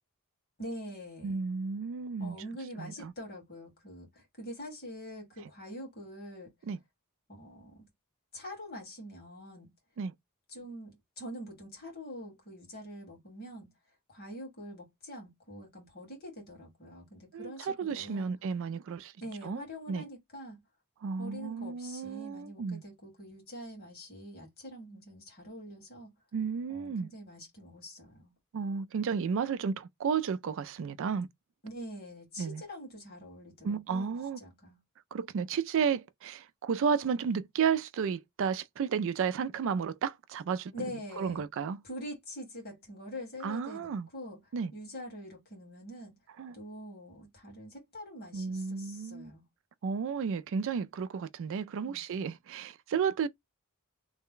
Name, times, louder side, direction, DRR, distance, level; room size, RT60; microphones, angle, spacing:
voice 1, 0.6-1.4 2.2-6.5 7.3-7.7 8.3-9.7 10.5-13.7 14.1-18.3 19.2-20.6 21.2-26.1 26.7-28.3 31.6-34.8 40.7-41.4 41.8-44.4 44.7-46.1 46.5-49.4 51.9-52.0, equal, 45° left, 1.9 m, -45 dB
voice 2, 1.2-2.4 2.8-3.1 6.6-6.8 10.0-10.1 17.3-19.1 19.4-20.0 21.0-22.8 26.3-27.1 28.5-31.3 32.4-32.6 33.6-34.4 35.1-41.8 43.4-44.1 44.5-44.7 46.4-46.6 48.3-49.3 49.8-53.3, right 6 dB, 65° right, 0.3 m, -33 dB
3.3 x 2.1 x 3.7 m
head